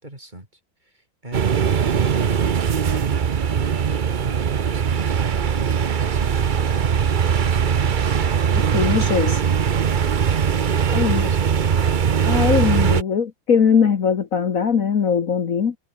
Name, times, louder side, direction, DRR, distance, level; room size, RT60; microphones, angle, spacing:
voice 1, 0.0-8.6, right 1 dB, 25° right, 5.1 m, -40 dB
sound 1, 1.3-13.0, right 7 dB, 85° right, 0.4 m, -20 dB
voice 2, 8.5-9.4 10.9-11.3 12.3-15.8, left 6 dB, 50° left, 1.7 m, -20 dB
omnidirectional pair, 2.0 m